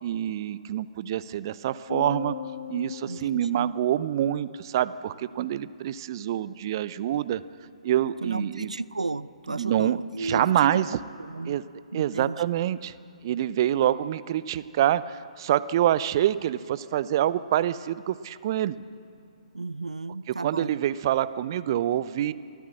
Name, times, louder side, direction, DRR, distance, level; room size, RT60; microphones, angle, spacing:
voice 1, 0.0-2.4 2.7-7.4 7.8-8.7 9.6-11.0 11.5-11.6 11.9-12.9 13.2-18.7 20.4-22.3, right 11 dB, 40° right, 16 dB, 0.6 m, -26 dB
sound 1, 1.9-4.4, left 9 dB, 55° left, 1.0 m, -38 dB
voice 2, 3.0-3.7 8.2-10.9 11.2-11.6 11.9-12.4 13.8-14.0 19.5-20.8, right 3 dB, 75° right, 18 dB, 0.6 m, -34 dB
25.0 x 14.0 x 7.8 m, 2.4 s
figure-of-eight pair, 130°, 4 cm